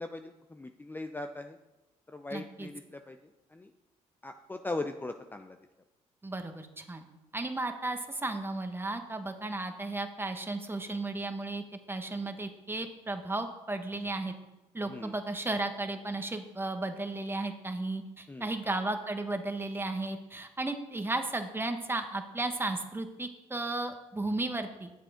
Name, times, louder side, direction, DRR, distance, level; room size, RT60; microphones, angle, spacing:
voice 1, 0.0-1.6 2.1-3.2 3.5-3.7 4.2-5.6 14.9-15.1 18.3-18.5, left 2 dB, 15° left, 6 dB, 0.6 m, -39 dB
voice 2, 2.3-2.7 6.2-7.0 7.3-11.6 11.9-14.3 14.7-24.9, right 2 dB, 15° right, 6 dB, 1.3 m, -34 dB
9.3 x 7.4 x 5.1 m, 1.0 s
supercardioid pair, 75°, 14 cm